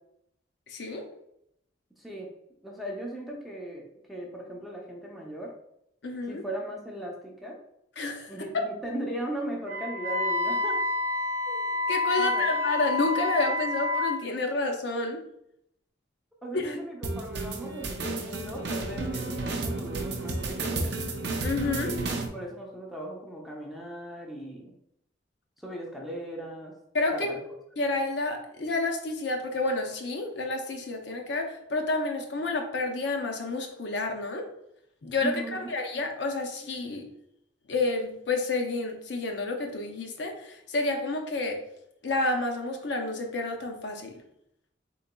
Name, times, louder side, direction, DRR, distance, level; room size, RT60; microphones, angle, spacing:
voice 1, 0.7-1.1 6.0-6.4 8.0-8.3 11.5-11.6 11.9-15.2 16.5-16.8 21.4-21.9 26.9-27.3 27.8-34.5 35.0-37.0 37.7-41.6 42.0-44.1, left 2 dB, 65° left, 3 dB, 0.6 m, -30 dB
voice 2, 2.0-2.3 2.6-5.5 6.3-7.6 8.3-10.8 12.2-12.5 16.4-20.9 21.8-24.7 25.6-26.7 27.1-27.4 35.2-35.7, right 1 dB, ahead, -2 dB, 0.5 m, -38 dB
Wind instrument woodwind instrument, 9.6-14.2, left 3 dB, 35° right, 0.9 m, -28 dB
sound 1, 17.0-22.3, right 2 dB, 60° right, 0.5 m, -32 dB
3.9 x 3.8 x 2.2 m, 0.76 s
head